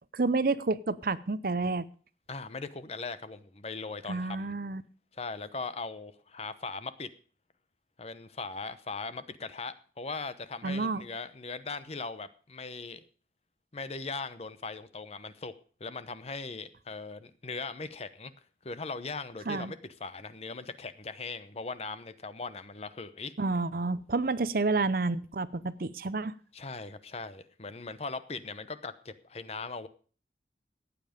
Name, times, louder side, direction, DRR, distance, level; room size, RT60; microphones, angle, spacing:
voice 1, 0.1-1.9 4.1-4.8 10.6-11.0 19.5-19.7 23.4-26.3, right 3 dB, 55° right, 16 dB, 0.6 m, -29 dB
voice 2, 2.3-4.5 5.1-7.1 8.0-13.0 13.7-15.5 15.8-18.3 18.6-23.3 26.5-29.9, left 4 dB, 35° left, 13 dB, 0.9 m, -39 dB
14.5 x 9.5 x 5.1 m, 0.41 s
head